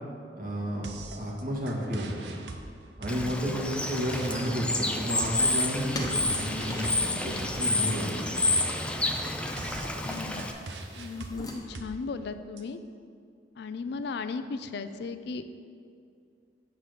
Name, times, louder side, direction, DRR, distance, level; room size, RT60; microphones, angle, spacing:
voice 1, 0.3-2.4 3.0-8.2, equal, 55° right, -3 dB, 1.6 m, -32 dB
sound 1, 0.8-12.6, right 2 dB, 75° right, 0.6 m, -43 dB
Bird / Water, 3.1-10.5, left 2 dB, 5° left, 0.4 m, -29 dB
voice 2, 3.2-3.6 10.0-10.4 11.0-12.8 13.6-15.5, left 4 dB, 65° left, 11 dB, 0.4 m, -36 dB
sound 2, 5.4-11.6, left 1 dB, 20° left, 0.9 m, -42 dB
7.6 x 4.0 x 6.6 m, 2.3 s
head